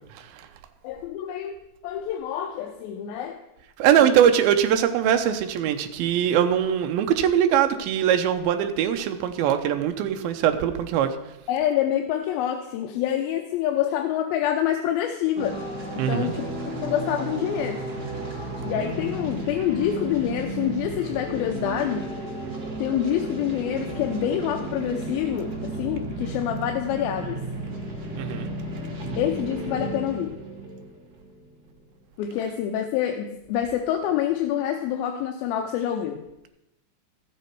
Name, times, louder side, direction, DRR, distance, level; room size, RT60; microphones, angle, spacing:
voice 1, 0.1-0.5 3.8-11.2 16.0-16.3 28.2-28.5, right 9 dB, 80° right, 7 dB, 2.5 m, -22 dB
voice 2, 0.8-1.6 1.8-3.4 4.0-4.2 11.5-15.6 16.1-16.5 16.8-17.8 18.6-22.1 22.8-27.4 29.2-30.3 32.2-36.5, left 10 dB, 85° left, 4 dB, 2.5 m, -27 dB
sound 1, 15.4-31.7, right 2 dB, 40° right, 1.5 m, -33 dB
13.0 x 7.9 x 4.5 m, 0.88 s
omnidirectional pair, 4.3 m